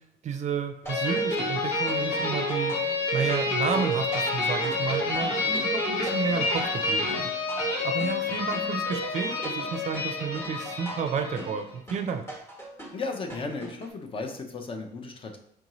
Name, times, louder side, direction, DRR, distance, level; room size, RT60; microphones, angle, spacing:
voice 1, 0.2-7.3 7.8-12.2, right 6 dB, 45° right, 6 dB, 0.4 m, -31 dB
sound 1, 0.9-11.6, left 2 dB, 75° left, 1.2 m, -28 dB
sound 2, 0.9-13.9, right 1 dB, 15° left, 1.1 m, -43 dB
voice 2, 12.9-15.4, left 3 dB, 30° left, 5 dB, 0.6 m, -35 dB
4.6 x 2.6 x 3.0 m, 0.69 s
cardioid pair, 110°, 17 cm